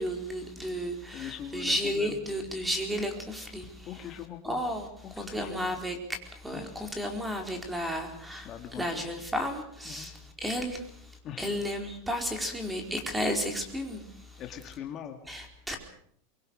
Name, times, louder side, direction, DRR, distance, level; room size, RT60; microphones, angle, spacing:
voice 1, 0.0-3.9 4.4-10.8 11.4-14.0 15.3-15.8, equal, 5° right, 4 dB, 4.6 m, -33 dB
voice 2, 1.1-2.2 3.6-4.6 5.0-5.8 6.5-6.8 8.4-9.1 9.9-10.1 11.2-11.6 14.4-15.2, left 9 dB, 35° left, 5 dB, 2.4 m, -42 dB
24.5 x 23.0 x 6.6 m, 0.64 s
supercardioid pair, 135°, 0 cm